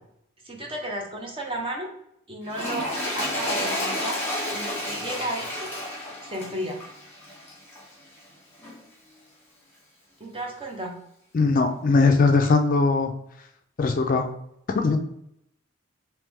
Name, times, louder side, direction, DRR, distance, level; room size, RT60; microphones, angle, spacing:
voice 1, 0.4-1.9 2.3-4.2 4.5-5.7 6.2-6.8 10.2-11.0, right 1 dB, 25° right, 1 dB, 0.6 m, -33 dB
Toilet flush, 2.4-7.9 8.6-8.7, left 1 dB, 10° left, 1.3 m, -31 dB
voice 2, 11.3-13.1 13.8-14.3 14.7-15.0, left 3 dB, 40° left, 5 dB, 0.3 m, -20 dB
3.3 x 3.0 x 3.4 m, 0.75 s
head